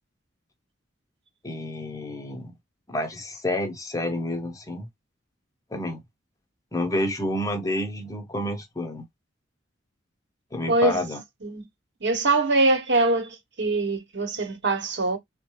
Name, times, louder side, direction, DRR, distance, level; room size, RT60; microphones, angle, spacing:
voice 1, 1.4-2.5 2.9-4.9 5.7-6.0 6.7-9.1 10.5-11.2, left 1 dB, 15° left, 0.7 m, -29 dB
voice 2, 10.7-11.0 11.4-11.6 12.0-15.2, right 2 dB, 65° right, 1.1 m, -23 dB
3.8 x 2.1 x 3.0 m
head